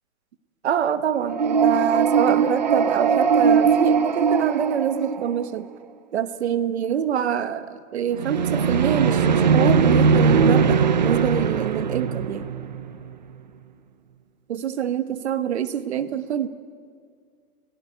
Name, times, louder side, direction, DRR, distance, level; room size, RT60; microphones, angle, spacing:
voice 1, 0.6-5.7 6.1-12.5 14.5-16.5, right 9 dB, 45° right, 12 dB, 1.2 m, -25 dB
sound 1, 1.2-5.5 8.1-13.1, right 6 dB, 30° right, 0.6 m, -20 dB
30.0 x 18.0 x 9.3 m, 2.1 s
hypercardioid pair, 180°, 45 cm